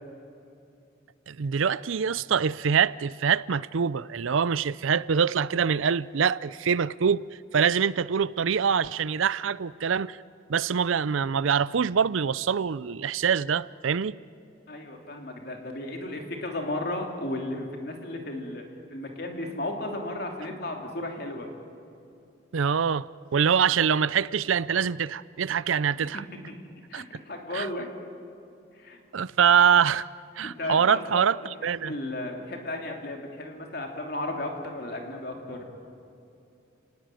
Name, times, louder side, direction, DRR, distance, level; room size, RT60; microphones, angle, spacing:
voice 1, 1.3-7.2 7.5-10.2 10.5-14.2 22.5-26.2 26.9-27.0 27.5-27.7 29.1-30.1 30.4-31.9, right 7 dB, 85° right, 0.5 m, -24 dB
voice 2, 14.7-18.6 18.9-21.5 26.1-26.5 26.9-27.9 28.7-29.0 30.4-31.3 31.6-35.7, left 1 dB, 50° left, 3.0 m, -34 dB
29.5 x 19.0 x 9.1 m
head